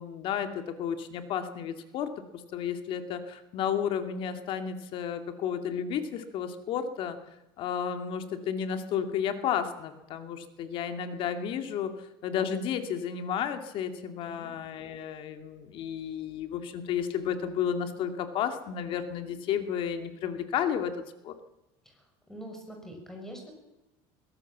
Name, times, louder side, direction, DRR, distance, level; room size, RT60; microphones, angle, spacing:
voice 1, 0.0-2.1 2.5-7.2 7.6-20.9 21.2-21.3, left 8 dB, 50° left, 8 dB, 2.5 m, -32 dB
voice 2, 21.8-23.5, equal, 5° left, 2 dB, 6.4 m, -44 dB
22.5 x 17.0 x 7.4 m, 0.97 s
cardioid pair, 150°, 12 cm